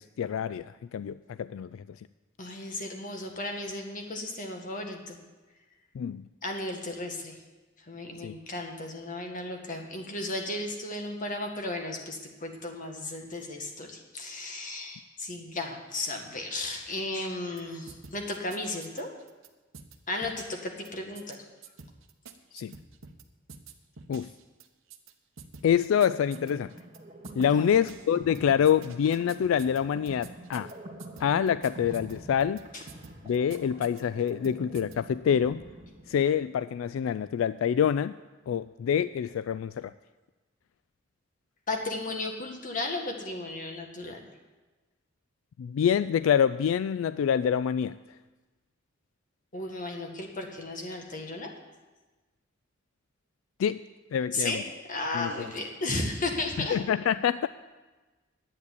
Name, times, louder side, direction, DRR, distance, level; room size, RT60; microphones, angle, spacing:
voice 1, 0.0-1.8 5.9-6.2 8.2-8.3 22.5-22.7 24.1-24.3 25.6-26.7 27.4-30.7 31.2-32.6 33.2-35.6 36.1-38.1 38.5-39.9 45.6-47.9 53.6-53.8 54.1-54.6 55.1-55.5 56.6-57.5, left 8 dB, 85° left, 15 dB, 0.3 m, -26 dB
voice 2, 2.4-5.2 6.4-7.4 7.9-19.1 20.1-21.4 27.6-27.7 41.7-44.2 49.5-51.5 54.3-54.6 54.9-56.8, left 2 dB, 40° left, 3 dB, 1.8 m, -34 dB
sound 1, 17.6-17.7 17.9-19.5 19.7-19.9 20.2-20.9 21.1-21.3 21.6-23.2 23.5-25.1 25.4-27.0 27.2-27.5 27.7-28.4 28.6-30.7 31.0-32.6 32.9-34.5 34.7-34.9, right 5 dB, 75° right, 1.0 m, -48 dB
sound 2, 26.0-36.6, right 1 dB, 30° right, 1.8 m, -46 dB
11.0 x 8.6 x 8.3 m, 1.2 s
head